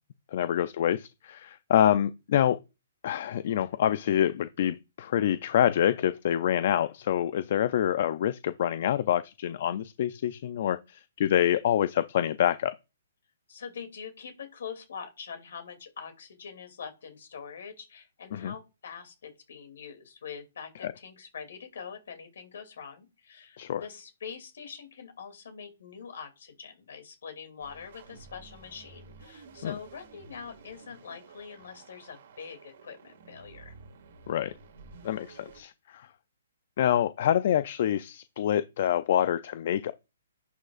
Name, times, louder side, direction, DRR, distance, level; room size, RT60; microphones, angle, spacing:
voice 1, 0.3-2.6 3.0-12.7 18.3-18.5 20.8-20.9 23.6-23.8 29.6-29.7 34.3-34.5 35.0-36.1 36.8-39.9, left 10 dB, 50° left, 0.4 m, -26 dB
voice 2, 13.5-33.7, left 6 dB, 70° left, 2.5 m, -44 dB
sound 1, 27.6-35.6, right 4 dB, 60° right, 2.1 m, -52 dB
11.0 x 6.4 x 2.4 m
hypercardioid pair, 155°, 0 cm